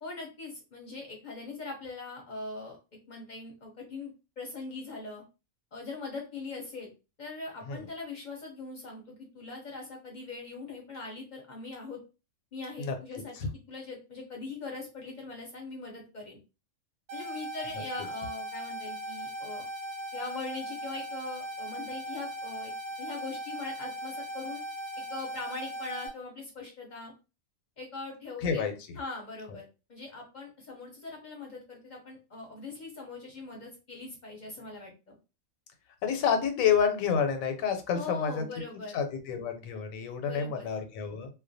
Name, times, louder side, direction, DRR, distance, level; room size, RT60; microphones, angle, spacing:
voice 1, 0.0-5.2 5.7-6.9 7.2-12.0 12.5-16.4 17.1-19.7 20.1-22.7 23.0-24.6 25.0-27.1 27.8-28.7 28.9-35.2 37.9-39.0 40.2-40.7, left 3 dB, 50° left, 0 dB, 0.6 m, -41 dB
sound 1, 17.1-26.1, right 1 dB, 60° right, 0.9 m, -39 dB
voice 2, 28.4-28.7 36.0-38.4 38.9-41.3, left 7 dB, 90° left, 6 dB, 1.0 m, -28 dB
2.3 x 2.1 x 2.6 m, 0.30 s
omnidirectional pair, 1.4 m